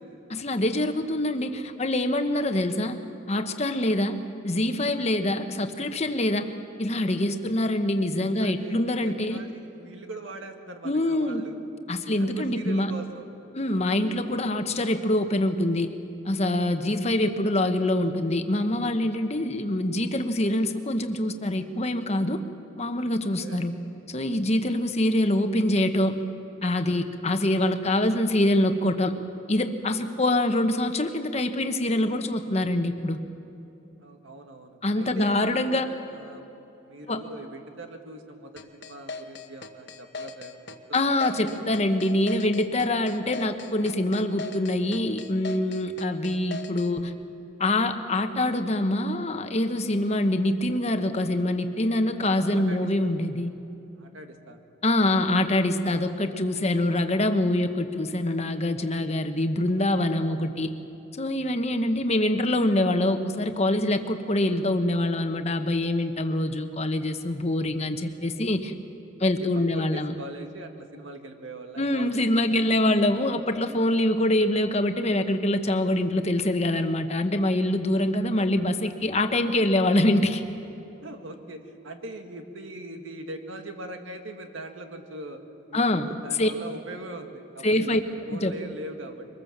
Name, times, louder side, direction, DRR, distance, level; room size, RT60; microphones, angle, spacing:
voice 1, 0.3-3.0 3.3-4.2 4.4-6.5 6.8-9.4 10.8-11.5 11.9-12.9 13.5-15.9 16.3-22.4 22.8-23.7 24.1-26.2 26.6-29.1 29.5-33.2 34.8-35.9 37.1-37.2 40.9-47.1 47.6-53.5 54.8-60.7 61.2-68.7 69.2-70.1 71.8-80.4 85.7-86.1 86.4-86.5 87.6-88.0 88.3-88.5, left 1 dB, 35° left, 7 dB, 1.1 m, -25 dB
voice 2, 8.4-11.6 12.0-13.2 23.4-23.6 24.4-24.8 34.0-36.5 36.9-41.8 52.5-52.9 54.0-54.6 61.5-61.9 69.2-72.6 81.0-85.4 85.7-89.3, right 1 dB, 80° right, 5 dB, 1.9 m, -41 dB
sound 1, 38.6-46.9, left 4 dB, 60° left, 1.2 m, -39 dB
24.0 x 20.0 x 7.3 m, 3.0 s
head